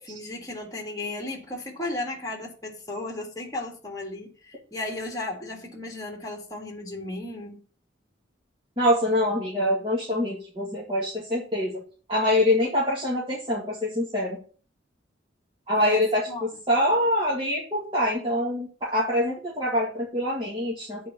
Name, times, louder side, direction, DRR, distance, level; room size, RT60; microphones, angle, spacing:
voice 1, 0.1-7.6 15.8-16.5, left 2 dB, 20° left, 1.8 m, -35 dB
voice 2, 8.8-11.8 12.1-14.4 15.7-21.0, left 1 dB, 30° right, 2.2 m, -25 dB
8.2 x 4.6 x 6.9 m
head